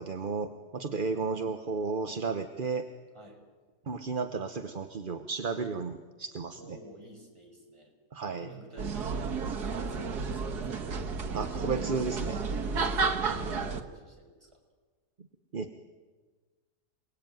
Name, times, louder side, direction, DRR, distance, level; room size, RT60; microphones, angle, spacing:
voice 1, 0.0-2.9 3.9-6.8 8.1-8.5 11.3-12.4 15.5-15.8, right 4 dB, 35° right, 7 dB, 1.0 m, -33 dB
voice 2, 6.5-7.9 8.4-10.9 12.7-14.6, right 2 dB, 15° right, 0 dB, 5.8 m, -48 dB
sound 1, 8.8-13.8, right 4 dB, 75° right, 2.2 m, -32 dB
28.0 x 20.0 x 9.3 m, 1.4 s
omnidirectional pair, 1.7 m